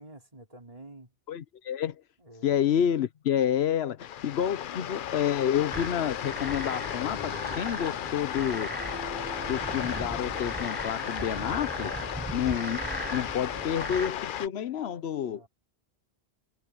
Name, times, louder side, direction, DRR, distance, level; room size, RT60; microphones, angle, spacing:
voice 1, 0.0-1.1 2.2-2.6 15.2-15.5, right 2 dB, 35° right, 5.1 m, -49 dB
voice 2, 1.3-2.0 2.4-8.7 9.5-11.9 12.3-12.8 13.1-15.4, left 9 dB, 80° left, 1.0 m, -29 dB
sound 1, 4.0-14.5, left 10 dB, 60° left, 0.7 m, -35 dB
sound 2, 5.7-14.1, right 2 dB, 15° right, 0.5 m, -38 dB
omnidirectional pair, 1.1 m